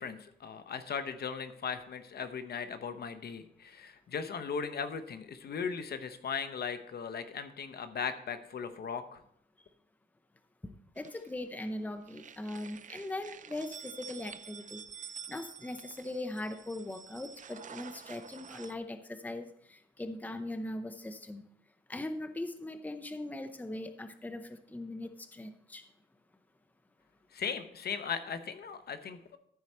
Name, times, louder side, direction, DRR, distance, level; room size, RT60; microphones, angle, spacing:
voice 1, 0.0-9.2 27.3-29.4, left 6 dB, 55° left, 9 dB, 0.9 m, -38 dB
voice 2, 10.6-14.8 15.3-21.4 21.9-25.8, left 1 dB, 10° left, 9 dB, 0.7 m, -40 dB
sound 1, 11.0-11.7 12.0-18.8, right 7 dB, 40° right, 0.5 m, -49 dB
14.0 x 4.7 x 4.3 m, 0.70 s
cardioid pair, 100°, 19 cm